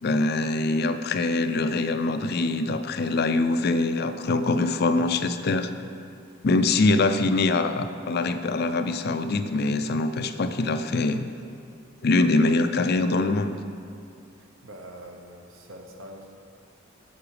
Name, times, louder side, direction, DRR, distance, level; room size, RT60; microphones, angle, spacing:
voice 1, 0.0-5.7 6.4-11.3 12.0-13.5, left 2 dB, 50° left, 9 dB, 0.4 m, -23 dB
voice 2, 14.6-16.4, right 1 dB, 80° right, 2 dB, 1.1 m, -44 dB
9.6 x 7.0 x 4.9 m, 2.4 s
head